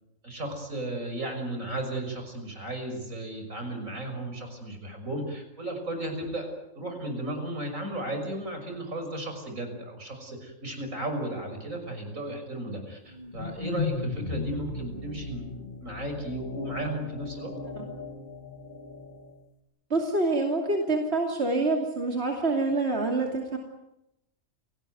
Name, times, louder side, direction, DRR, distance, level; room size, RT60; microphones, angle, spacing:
voice 1, 0.2-6.5 6.7-17.5, right 1 dB, 75° right, 5 dB, 6.6 m, -35 dB
sound 1, 13.1-19.4, left 4 dB, 35° left, 1.9 m, -37 dB
voice 2, 19.9-23.6, right 2 dB, 50° right, 2 dB, 3.1 m, -26 dB
30.0 x 18.0 x 9.2 m, 0.87 s
omnidirectional pair, 1.4 m